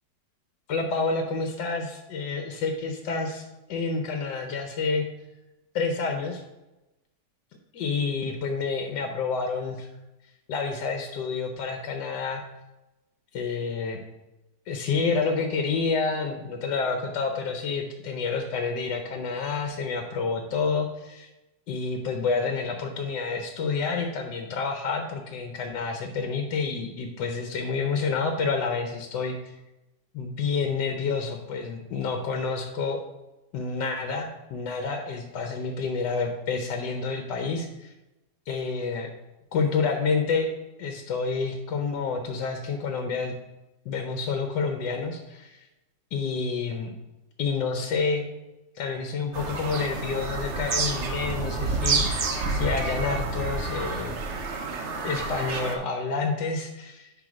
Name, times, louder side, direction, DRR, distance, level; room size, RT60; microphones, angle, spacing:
voice 1, 0.7-3.4 3.7-5.0 5.7-6.4 7.7-9.9 10.5-12.4 13.3-14.0 14.7-21.3 21.7-29.5 30.1-33.0 33.5-37.9 38.5-39.1 39.5-40.5 40.8-43.3 43.9-45.7 46.1-46.9 47.4-48.3 48.7-54.2 55.0-57.1, left 4 dB, 70° left, 5 dB, 1.3 m, -29 dB
Bird vocalization bird call bird song, 49.3-55.7, right 3 dB, 50° right, 0.9 m, -29 dB
10.0 x 3.4 x 4.8 m, 1.0 s
omnidirectional pair, 2.0 m